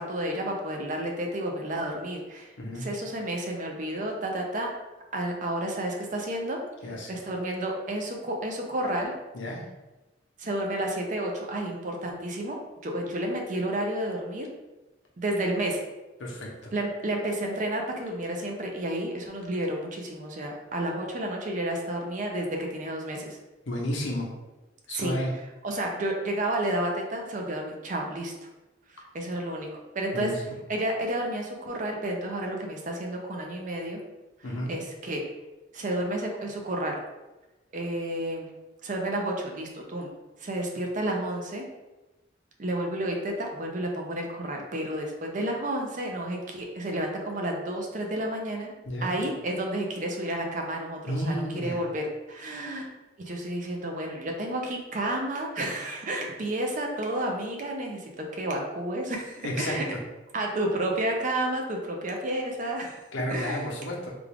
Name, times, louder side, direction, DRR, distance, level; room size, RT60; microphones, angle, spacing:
voice 1, 0.0-4.7 5.1-6.6 7.1-9.1 10.4-14.5 15.2-15.8 16.7-23.4 24.9-28.3 29.1-30.3 30.7-34.0 34.4-35.2 35.7-37.0 37.7-38.5 38.8-40.1 40.4-41.6 42.6-48.7 49.0-52.9 53.2-59.8 60.3-63.0 63.3-63.7, right 1 dB, 45° right, 1 dB, 0.5 m, -31 dB
voice 2, 23.7-24.3 24.9-25.3 30.1-30.3 34.4-34.7 48.9-49.1 51.1-51.8 59.4-59.8 63.1-64.1, equal, 80° left, -2 dB, 0.8 m, -31 dB
3.4 x 2.4 x 3.4 m, 1.1 s
head